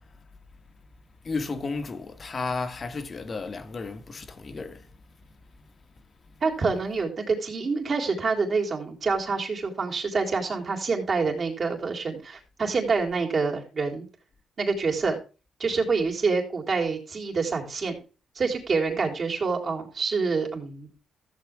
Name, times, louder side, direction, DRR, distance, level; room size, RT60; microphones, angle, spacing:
voice 1, 1.2-4.9, left 4 dB, 40° left, 1.5 m, -33 dB
voice 2, 6.4-14.0 14.6-15.2 15.6-18.0 18.3-20.9, right 4 dB, 45° right, 3.4 m, -27 dB
14.5 x 7.4 x 3.5 m
cardioid pair, 90°, 0 cm